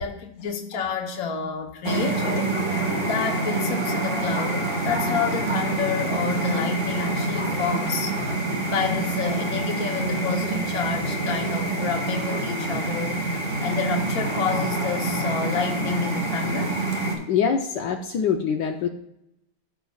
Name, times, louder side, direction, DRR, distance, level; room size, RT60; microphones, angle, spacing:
voice 1, 0.0-2.6 3.1-8.1 8.7-13.2 13.6-16.8, left 6 dB, 55° left, 3 dB, 1.4 m, -29 dB
sound 1, 1.8-17.2, right 2 dB, 35° right, 1.6 m, -26 dB
voice 2, 17.3-18.9, left 7 dB, 75° left, 3 dB, 1.3 m, -24 dB
14.5 x 5.7 x 2.4 m, 0.79 s
omnidirectional pair, 1.9 m